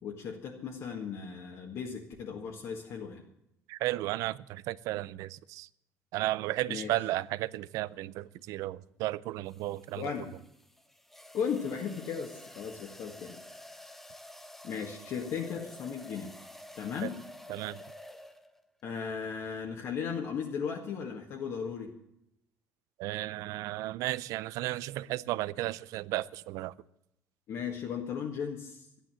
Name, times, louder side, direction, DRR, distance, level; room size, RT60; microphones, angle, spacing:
voice 1, 0.0-3.2 6.7-6.9 9.9-10.3 11.3-13.4 14.6-16.3 16.8-17.2 18.8-21.9 27.5-29.0, left 6 dB, 55° left, 1.8 m, -36 dB
voice 2, 3.7-5.7 6.1-10.1 17.0-17.1 17.5-17.8 23.0-26.7, right 16 dB, 75° right, 0.5 m, -34 dB
sound 1, 7.5-7.8 9.5-18.7, left 1 dB, 5° left, 0.8 m, -50 dB
13.0 x 11.0 x 7.6 m
cardioid pair, 155°, 6 cm